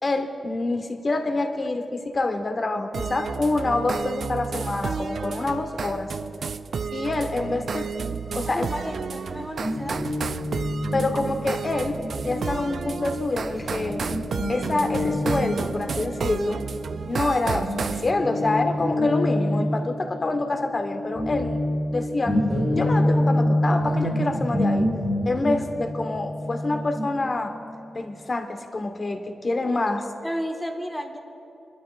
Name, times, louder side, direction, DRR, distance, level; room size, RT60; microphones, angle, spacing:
voice 1, 0.0-6.1 6.9-7.9 8.3-8.7 10.9-12.0 12.2-14.1 14.5-16.6 17.1-22.4 22.7-24.9 25.3-27.5 27.9-30.1, left 2 dB, 40° left, 6 dB, 1.1 m, -26 dB
sound 1, 2.9-18.1, right 5 dB, 65° right, 0.3 m, -31 dB
voice 2, 8.4-10.1 30.2-31.2, equal, 5° left, 3 dB, 1.2 m, -32 dB
Guitar, 9.6-17.3 17.6-28.0, left 1 dB, 10° right, 2.2 m, -27 dB
27.0 x 12.0 x 2.4 m, 2.7 s
wide cardioid pair, 100°, 0 cm